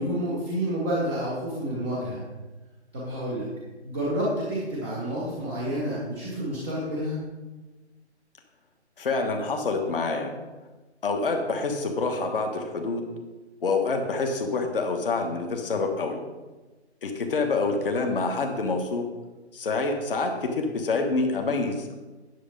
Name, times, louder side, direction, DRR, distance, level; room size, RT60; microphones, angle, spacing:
voice 1, 0.0-2.2 2.9-3.5 3.8-7.2, right 1 dB, ahead, -13 dB, 0.5 m, -29 dB
voice 2, 9.0-10.3 11.0-13.0 13.6-16.2 17.0-19.0 19.5-21.9, left 3 dB, 50° left, 4 dB, 1.4 m, -27 dB
9.9 x 7.0 x 5.2 m, 1.2 s
figure-of-eight pair, 145°, 34 cm